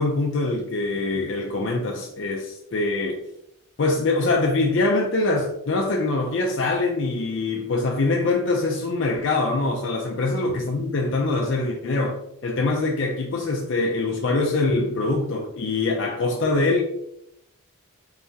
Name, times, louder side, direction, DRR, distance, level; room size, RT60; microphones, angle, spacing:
voice 1, 0.0-3.2 3.8-16.8, left 2 dB, 60° left, 0.5 m, -24 dB
4.0 x 3.5 x 2.7 m
head